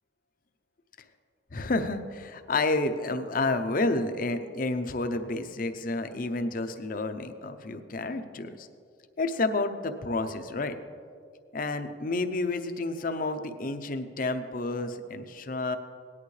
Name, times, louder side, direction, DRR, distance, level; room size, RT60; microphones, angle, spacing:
voice 1, 1.5-8.7 9.2-10.8 11.5-15.8, left 2 dB, 45° left, 8 dB, 0.7 m, -30 dB
18.0 x 11.0 x 3.3 m, 2.3 s
head